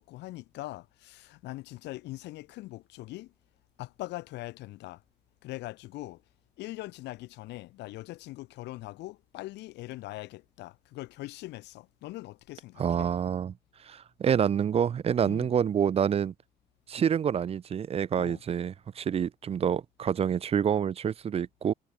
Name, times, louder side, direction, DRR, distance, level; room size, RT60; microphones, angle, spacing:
voice 1, 0.0-3.3 3.8-5.0 5.4-6.2 6.6-13.1 15.2-15.5 18.2-18.4, left 18 dB, 90° left, 2.3 m, -41 dB
voice 2, 12.8-13.5 13.9-16.3 16.9-21.7, right 8 dB, 35° right, 0.5 m, -27 dB
cardioid pair, 105°, 17 cm